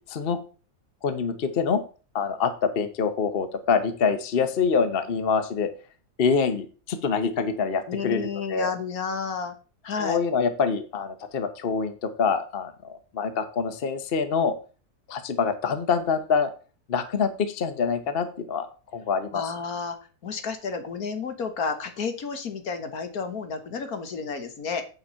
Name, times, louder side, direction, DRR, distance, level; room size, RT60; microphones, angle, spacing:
voice 1, 1.0-1.8 2.1-5.7 6.2-8.7 10.0-14.5 15.1-16.5 16.9-18.7 18.9-19.4, left 5 dB, 45° left, 9 dB, 1.1 m, -25 dB
voice 2, 7.9-9.5 9.8-10.2 19.3-20.0 20.2-24.8, left 5 dB, 70° left, 8 dB, 1.7 m, -31 dB
8.8 x 5.4 x 5.6 m, 0.36 s
omnidirectional pair, 1.6 m